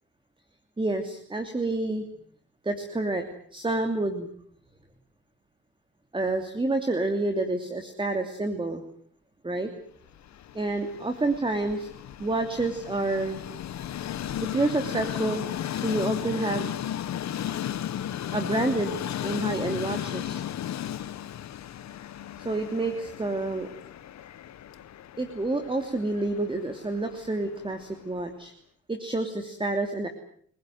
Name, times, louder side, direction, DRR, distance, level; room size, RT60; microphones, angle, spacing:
voice 1, 0.8-2.0 2.6-3.2 3.5-4.3 6.1-8.8 9.4-9.7 10.5-11.9 12.2-13.4 14.5-15.4 15.7-16.7 18.3-20.4 22.4-23.7 25.2-28.5 28.9-30.1, right 2 dB, 15° right, 6 dB, 2.9 m, -28 dB
Train, 10.1-28.2, left 11 dB, 65° left, 1.3 m, -35 dB
30.0 x 17.0 x 9.4 m, 0.63 s
cardioid pair, 90°, 30 cm